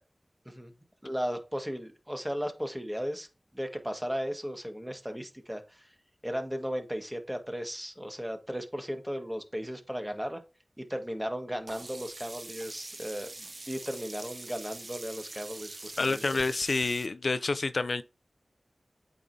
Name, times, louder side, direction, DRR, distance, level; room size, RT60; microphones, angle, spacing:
voice 1, 1.0-3.3 3.5-5.9 6.2-10.4 10.8-16.4, equal, 5° right, 1.6 m, -36 dB
Sink (filling or washing), 11.7-17.1, right 2 dB, 55° right, 0.6 m, -44 dB
voice 2, 16.0-18.0, left 3 dB, 80° left, 0.4 m, -28 dB
8.5 x 5.1 x 2.7 m
cardioid pair, 40°, 0 cm